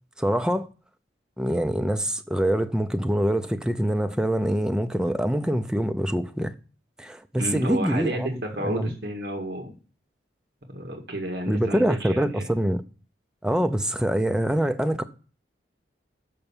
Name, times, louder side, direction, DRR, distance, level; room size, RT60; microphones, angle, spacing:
voice 1, 0.2-0.7 1.4-6.5 7.0-8.9 11.5-12.8 13.4-15.0, right 1 dB, 5° right, 0.5 m, -25 dB
voice 2, 7.4-9.7 10.7-12.5, right 1 dB, 60° right, 1.8 m, -31 dB
6.6 x 5.8 x 7.1 m
head